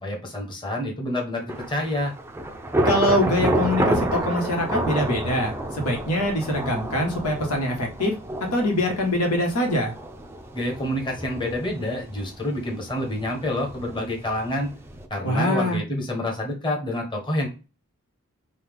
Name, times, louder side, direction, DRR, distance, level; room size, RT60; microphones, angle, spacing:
voice 1, 0.0-2.1 10.5-14.7 15.1-17.5, left 1 dB, 20° left, 0 dB, 1.1 m, -28 dB
Thunder / Rain, 1.5-15.1, right 1 dB, 10° right, 0.5 m, -30 dB
voice 2, 2.8-8.1 8.5-9.9 15.2-15.8, left 1 dB, 80° left, 1 dB, 1.4 m, -24 dB
5.6 x 2.3 x 3.5 m, 0.31 s
head